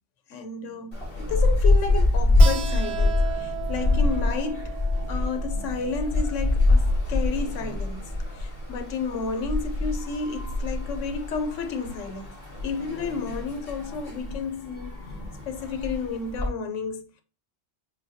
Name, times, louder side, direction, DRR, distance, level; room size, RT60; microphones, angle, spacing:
voice 1, 0.3-4.8 5.1-12.4 12.6-15.0 15.5-17.2, left 5 dB, 85° left, 1.0 m, -32 dB
sound 1, 0.9-16.5, left 2 dB, 50° left, 1.8 m, -25 dB
Keyboard (musical), 2.4-7.7, right 10 dB, 65° right, 0.8 m, -37 dB
6.1 x 2.2 x 2.7 m
omnidirectional pair, 1.2 m